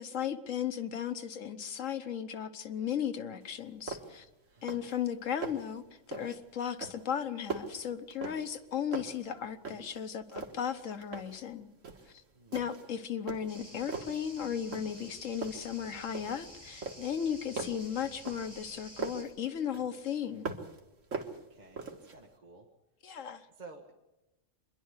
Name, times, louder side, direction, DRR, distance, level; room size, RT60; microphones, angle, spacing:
voice 1, 0.0-4.3 4.6-11.7 12.1-12.2 12.5-20.5 23.0-23.5, left 8 dB, 85° left, 10 dB, 1.4 m, -36 dB
sound 1, 3.4-3.5 3.9-4.3 4.6-5.0 5.3-5.8 6.1-6.4 6.8-8.6 8.9-10.0 10.3-11.4 11.8-12.1 12.5-12.9 13.3-14.2 14.7-15.1 15.4-16.5 16.8-19.3 19.7-20.8 21.1-22.2, right 4 dB, 90° right, 2.1 m, -41 dB
voice 2, 4.6-4.9 12.3-12.6 21.3-22.7 23.6-23.9, right 3 dB, 35° right, 0 dB, 1.7 m, -53 dB
sound 2, 13.5-19.2, equal, 10° right, 8.0 m, -51 dB
25.0 x 11.0 x 9.6 m, 0.99 s
omnidirectional pair, 1.3 m